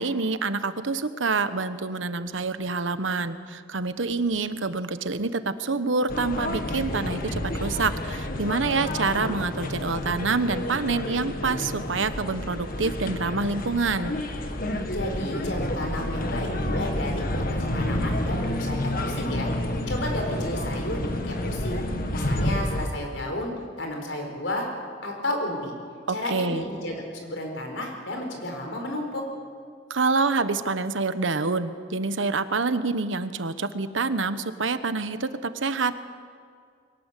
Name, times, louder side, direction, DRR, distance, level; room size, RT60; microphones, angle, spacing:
voice 1, 0.0-14.1 26.1-26.6 29.9-35.9, right 4 dB, 85° right, 12 dB, 1.1 m, -27 dB
sound 1, 6.1-22.9, left 1 dB, 50° left, 1.8 m, -29 dB
voice 2, 14.9-19.5 19.9-21.0 21.2-21.8 22.1-24.7 25.0-25.7 26.1-29.2, left 1 dB, 75° left, 3 dB, 4.6 m, -32 dB
22.0 x 18.5 x 8.4 m, 2.2 s
head